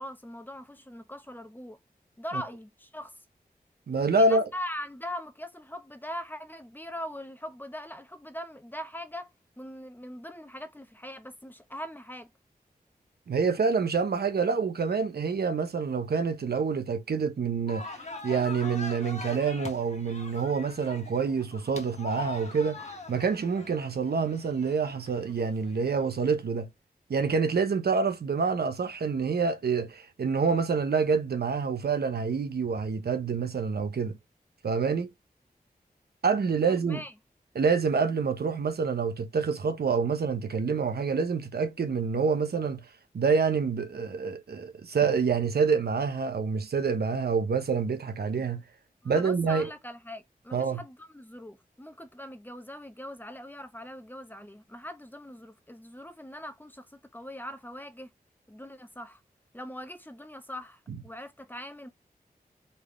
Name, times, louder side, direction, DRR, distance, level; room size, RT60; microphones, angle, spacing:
voice 1, 0.0-1.8 2.2-3.1 4.2-9.3 9.6-12.3 36.7-37.1 49.0-58.1 58.5-59.2 59.5-61.9, equal, 10° left, 1.0 m, -41 dB
voice 2, 3.9-4.5 13.3-26.7 27.1-34.2 34.6-35.1 36.2-37.0 37.5-42.8 43.1-48.6 49.0-49.7 50.5-50.8, right 5 dB, 85° right, 0.9 m, -27 dB
sound 1, 17.7-26.3, left 3 dB, 45° left, 1.5 m, -43 dB
4.3 x 3.5 x 3.2 m
cardioid pair, 50°, 16 cm